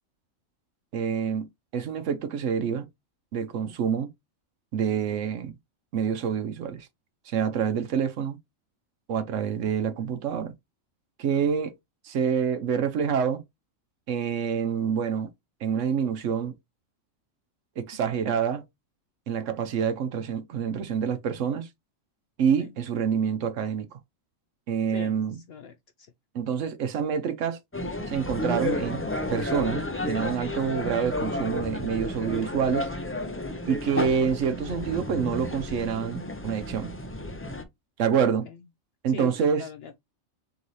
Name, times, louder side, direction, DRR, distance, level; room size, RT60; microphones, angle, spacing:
voice 1, 0.9-1.5 1.7-2.9 3.3-4.1 4.7-5.5 5.9-6.9 7.3-8.4 9.1-10.5 11.2-11.7 12.0-13.4 14.1-15.3 15.6-16.5 17.8-18.6 19.3-21.7 22.4-23.9 24.7-25.4 26.3-27.6 28.1-29.0 29.3-32.9 33.7-36.9 38.0-38.5 39.0-39.7, right 7 dB, 70° right, 1.0 m, -27 dB
voice 2, 24.9-25.8 38.4-38.6 39.1-39.3 39.6-40.0, left 6 dB, 65° left, 0.6 m, -41 dB
sound 1, 27.7-37.6, left 1 dB, 20° left, 0.3 m, -32 dB
4.0 x 3.8 x 3.1 m
omnidirectional pair, 1.4 m